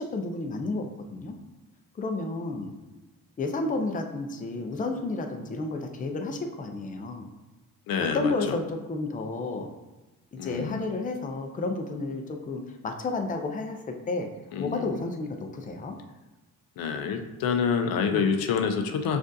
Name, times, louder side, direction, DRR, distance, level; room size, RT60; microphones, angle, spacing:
voice 1, 0.0-1.3 2.0-2.7 3.4-7.3 8.1-9.7 10.4-14.3 14.6-16.0 18.1-18.2, left 3 dB, 25° left, 4 dB, 0.5 m, -31 dB
voice 2, 7.9-8.6 10.4-10.8 14.5-15.0 16.8-19.2, left 6 dB, 90° left, 6 dB, 0.5 m, -27 dB
6.1 x 2.5 x 2.6 m, 1.1 s
cardioid pair, 115°, 34 cm